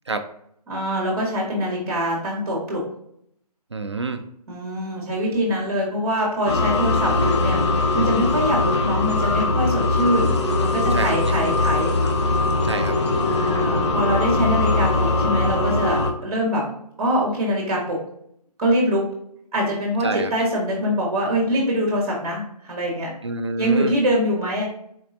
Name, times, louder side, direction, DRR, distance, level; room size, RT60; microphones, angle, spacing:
voice 1, 0.7-2.8 4.5-7.6 7.9-11.9 13.2-16.6 17.0-18.0 18.6-19.1 19.5-23.1 23.6-24.6, equal, 25° right, -3 dB, 1.5 m, -24 dB
voice 2, 3.7-4.2 10.9-11.1 12.6-13.0 20.0-20.3 23.2-23.9, right 3 dB, 45° right, 8 dB, 0.4 m, -27 dB
sound 1, 6.5-16.1, left 2 dB, 45° left, 0.7 m, -21 dB
4.2 x 3.0 x 2.8 m, 0.69 s
figure-of-eight pair, 170°, 21 cm